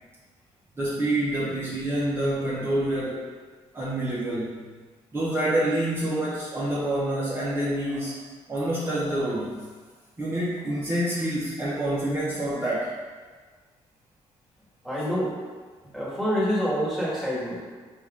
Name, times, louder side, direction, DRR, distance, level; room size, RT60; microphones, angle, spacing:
voice 1, 0.8-3.2 3.7-4.6 5.1-8.2 8.5-9.7 10.2-12.9, right 1 dB, 20° right, -9 dB, 0.7 m, -27 dB
voice 2, 14.8-15.3 15.9-17.6, equal, 5° left, -8 dB, 1.4 m, -26 dB
4.1 x 2.4 x 3.4 m, 1.5 s
cardioid pair, 100°, 12 cm